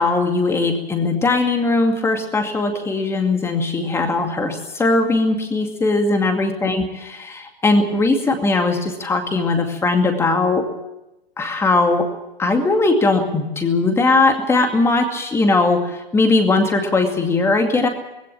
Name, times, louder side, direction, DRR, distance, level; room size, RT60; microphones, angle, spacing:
voice 1, 0.0-10.6 11.4-12.0 12.4-17.9, left 3 dB, 10° left, 5 dB, 2.3 m, -19 dB
19.5 x 16.5 x 8.7 m, 0.97 s
hypercardioid pair, 145°, 31 cm